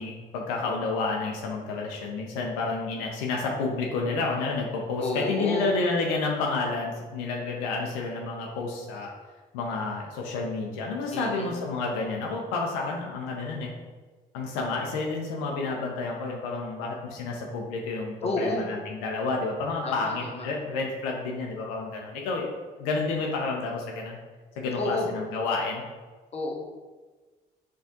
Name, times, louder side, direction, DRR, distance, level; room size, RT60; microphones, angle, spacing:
voice 1, 0.0-9.1 9.5-13.7 14.3-24.2 24.6-25.8, left 3 dB, 85° left, 0 dB, 0.5 m, -30 dB
voice 2, 5.0-5.7 11.1-11.5 18.2-18.7 19.8-20.5 24.8-25.1 26.3-26.6, left 2 dB, 30° left, -1 dB, 0.9 m, -30 dB
4.3 x 2.4 x 2.8 m, 1.3 s
hypercardioid pair, 50°, 20 cm